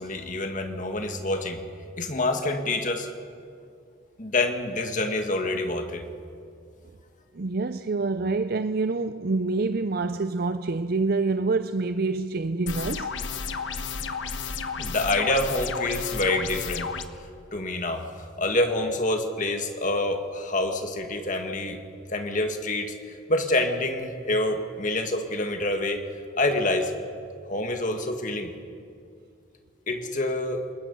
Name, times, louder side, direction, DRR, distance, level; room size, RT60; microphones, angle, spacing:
voice 1, 0.0-1.6 2.0-3.1 4.2-6.1 14.8-16.9 17.5-21.8 22.1-26.1 26.4-26.9 27.5-28.5 29.9-30.7, left 2 dB, 40° left, 1.9 m, -27 dB
voice 2, 7.3-13.1, right 3 dB, 50° right, 0.5 m, -26 dB
sound 1, 12.7-17.0, left 5 dB, 70° left, 1.1 m, -32 dB
28.5 x 21.0 x 5.5 m
head